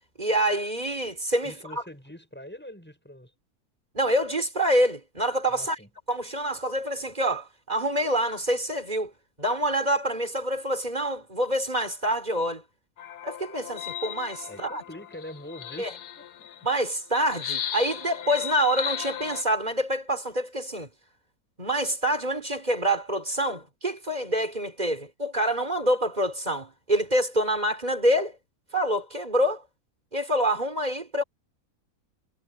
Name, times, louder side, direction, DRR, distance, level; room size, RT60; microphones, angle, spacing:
voice 1, 0.2-1.5 3.9-5.8 6.1-9.1 9.4-12.6 13.2-14.8 15.8-15.9 16.6-20.9 21.6-28.4 28.7-29.6 30.1-31.2, right 1 dB, 25° right, 3.4 m, -26 dB
voice 2, 1.4-3.3 5.5-5.9 14.4-16.5, left 1 dB, 5° left, 6.0 m, -44 dB
sound 1, 13.0-16.7 17.3-19.4, left 10 dB, 85° left, 1.6 m, -36 dB
omnidirectional pair, 1.6 m